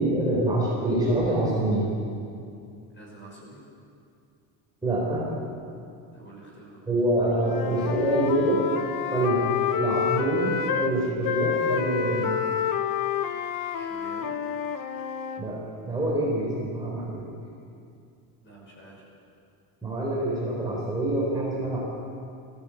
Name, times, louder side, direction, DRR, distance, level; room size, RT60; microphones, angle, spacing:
voice 1, 0.0-1.9 4.8-5.3 6.9-8.6 9.1-9.5 9.8-12.3 15.4-15.6 15.8-17.3 19.8-21.8, right 1 dB, 10° right, -6 dB, 4.0 m, -25 dB
voice 2, 2.9-3.6 6.1-6.8 13.7-14.3 18.4-19.1, right 2 dB, 25° left, -3 dB, 6.1 m, -48 dB
Wind instrument woodwind instrument, 7.4-10.9 11.2-15.5, left 8 dB, 45° left, 0.9 m, -28 dB
21.0 x 16.0 x 8.5 m, 2.5 s
cardioid pair, 175°, 48 cm